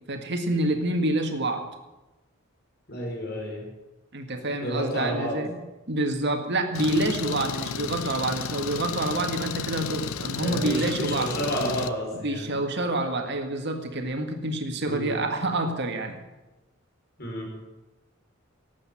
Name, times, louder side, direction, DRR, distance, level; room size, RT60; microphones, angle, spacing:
voice 1, 0.1-1.6 4.1-5.6 5.9-11.3 12.2-16.2, right 1 dB, 55° right, 5 dB, 1.8 m, -27 dB
voice 2, 2.9-3.6 4.6-5.4 10.4-12.5 14.8-15.2 17.2-17.5, equal, 50° left, 0 dB, 5.0 m, -30 dB
Engine, 6.8-11.9, left 6 dB, 80° left, 0.7 m, -33 dB
12.0 x 8.6 x 9.9 m, 1.1 s
head